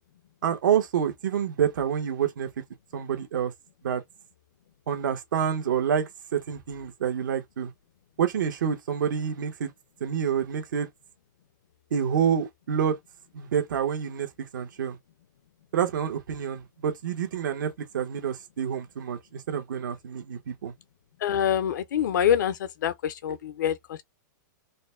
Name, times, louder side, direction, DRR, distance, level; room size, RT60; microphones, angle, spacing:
voice 1, 0.4-2.5 2.9-3.5 3.8-4.0 4.9-7.7 8.2-9.7 10.0-10.9 11.9-13.0 13.3-15.0 15.7-20.7, right 8 dB, 80° right, 1.3 m, -28 dB
voice 2, 21.2-24.0, left 9 dB, 70° left, 0.7 m, -26 dB
4.0 x 2.2 x 3.3 m
supercardioid pair, 165°, 10 cm